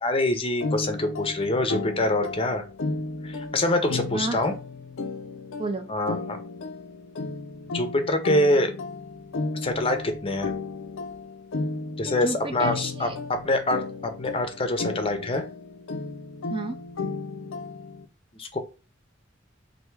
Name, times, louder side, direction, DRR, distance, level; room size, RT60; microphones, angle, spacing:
voice 1, 0.0-2.6 3.2-4.5 5.9-6.4 7.7-8.7 9.6-10.5 12.0-15.4 18.3-18.6, left 1 dB, 30° left, 7 dB, 0.6 m, -25 dB
sound 1, 0.6-18.1, left 3 dB, 85° left, 0.5 m, -34 dB
voice 2, 4.1-4.4 5.6-5.9 12.2-13.1 16.5-16.8, right 3 dB, 25° right, 7 dB, 0.4 m, -31 dB
3.3 x 2.7 x 4.5 m, 0.34 s
head